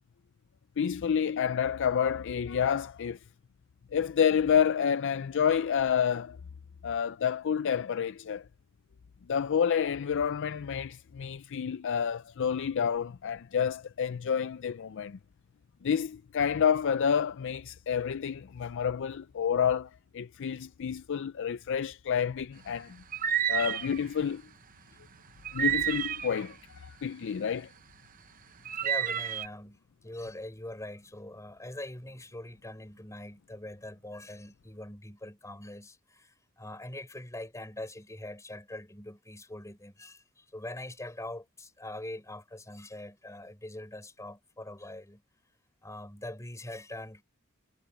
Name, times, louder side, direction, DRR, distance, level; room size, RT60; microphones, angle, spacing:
voice 1, 0.8-3.2 3.9-6.4 6.8-8.4 9.3-15.2 15.8-23.0 23.5-24.4 25.5-27.7, left 7 dB, 60° left, 0.4 m, -29 dB
sound 1, 23.1-24.0 25.4-26.5 28.7-29.5, right 9 dB, 40° right, 0.7 m, -30 dB
voice 2, 28.8-45.2 45.8-47.2, left 1 dB, 15° left, 3.8 m, -43 dB
head